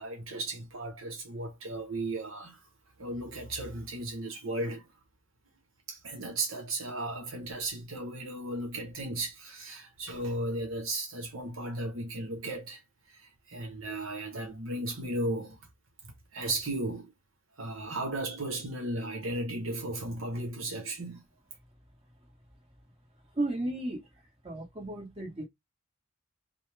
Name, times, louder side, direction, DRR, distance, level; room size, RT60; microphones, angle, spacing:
voice 1, 0.0-2.6 3.0-4.9 5.9-12.8 13.1-15.6 16.0-17.1 17.6-21.2, right 1 dB, 70° right, 1.1 m, -35 dB
voice 2, 23.3-24.1 24.4-25.5, right 2 dB, 25° right, 1.7 m, -34 dB
5.1 x 2.3 x 3.4 m
head